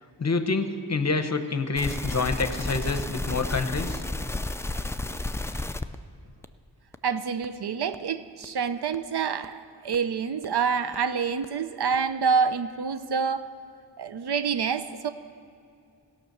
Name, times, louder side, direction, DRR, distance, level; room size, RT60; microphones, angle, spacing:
voice 1, 0.2-4.0, left 3 dB, 40° left, 9 dB, 0.8 m, -27 dB
sound 1, 1.7-5.9 6.4-6.5 6.9-7.0 7.4-7.5 7.9-8.0 8.4-8.5 8.9-9.0 9.4-9.5 9.9-10.0 10.4-10.5 10.9-11.0 11.4-11.5 11.9-12.0, left 2 dB, 5° left, 0.3 m, -32 dB
voice 2, 7.0-13.5 14.0-15.1, right 6 dB, 65° right, 11 dB, 0.6 m, -27 dB
16.5 x 5.9 x 6.6 m, 2.6 s
wide cardioid pair, 70°, 42 cm